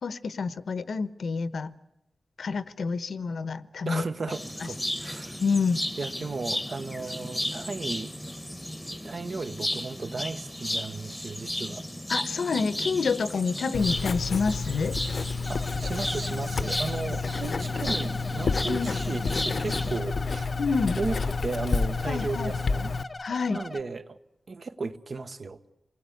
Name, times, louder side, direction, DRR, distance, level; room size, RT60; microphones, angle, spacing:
voice 1, 0.0-1.7 2.4-4.0 5.4-5.8 12.1-15.0 18.7-18.9 20.6-21.0 22.1-22.5 23.2-23.6, left 5 dB, 80° left, 1.0 m, -28 dB
voice 2, 3.8-5.4 6.0-8.1 9.0-11.8 15.5-20.5 21.0-22.9 23.5-24.2 24.5-25.6, right 3 dB, 55° right, 1.3 m, -35 dB
sound 1, 4.3-20.0, left 1 dB, 5° left, 1.1 m, -35 dB
Writing, 13.7-23.0, left 4 dB, 65° left, 0.9 m, -30 dB
sound 2, 15.4-23.8, left 2 dB, 35° left, 0.9 m, -40 dB
28.0 x 21.0 x 8.5 m
wide cardioid pair, 130°, 0 cm